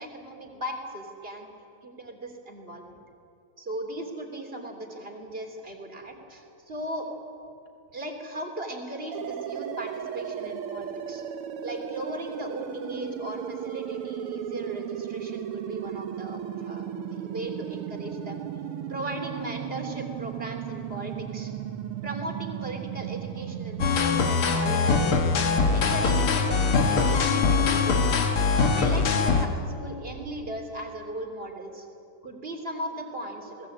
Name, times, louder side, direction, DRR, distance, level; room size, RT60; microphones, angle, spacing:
voice 1, 0.0-1.5 1.8-2.9 3.6-7.1 7.9-11.2 11.6-18.4 18.9-21.5 22.0-25.2 25.7-31.9 32.2-33.7, right 1 dB, 25° right, 3 dB, 3.4 m, -37 dB
sound 1, 9.1-24.0, right 9 dB, 80° right, 1.9 m, -35 dB
sound 2, 23.8-29.5, left 4 dB, 80° left, 2.6 m, -22 dB
27.5 x 19.5 x 8.7 m, 2.6 s
omnidirectional pair, 2.4 m